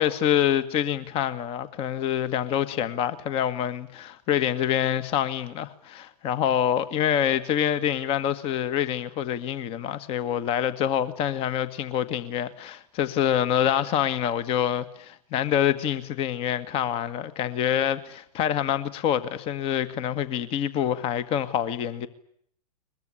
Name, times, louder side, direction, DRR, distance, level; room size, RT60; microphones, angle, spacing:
voice 1, 0.0-22.1, left 10 dB, 30° left, 1.6 m, -26 dB
22.5 x 22.0 x 9.9 m
figure-of-eight pair, 110°, 20 cm